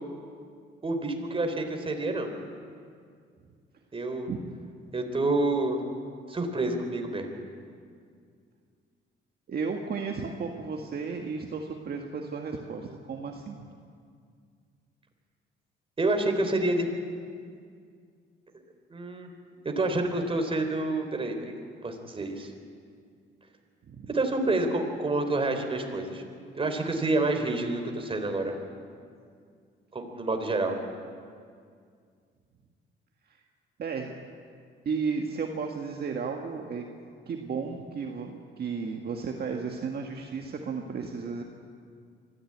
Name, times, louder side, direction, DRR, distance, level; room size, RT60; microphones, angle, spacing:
voice 1, 0.8-2.3 3.9-4.3 4.9-5.8 6.3-7.3 16.0-16.9 18.9-19.3 19.8-22.5 24.1-26.2 26.5-28.5 29.9-30.7, right 2 dB, 25° right, 5 dB, 3.4 m, -28 dB
voice 2, 4.3-4.7 9.5-13.7 23.9-24.1 33.3-33.4 33.8-34.1 34.8-36.8 37.2-41.4, right 5 dB, 50° right, 2 dB, 1.7 m, -34 dB
23.5 x 14.5 x 8.7 m, 2.2 s
cardioid pair, 90°, 20 cm